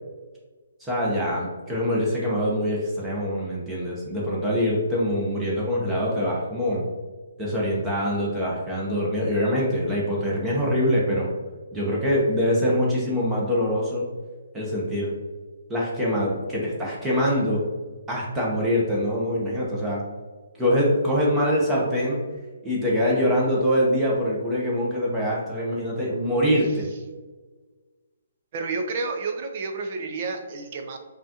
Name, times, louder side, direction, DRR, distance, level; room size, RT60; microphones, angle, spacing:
voice 1, 0.8-6.8 7.4-11.3 11.7-14.1 14.5-15.1 15.7-17.6 18.1-20.0 20.5-22.2 22.6-26.9, equal, 10° right, -5 dB, 0.9 m, -24 dB
voice 2, 28.5-31.0, right 4 dB, 40° right, 4 dB, 0.7 m, -30 dB
5.2 x 2.5 x 2.9 m, 1.3 s
hypercardioid pair, 145°, 0 cm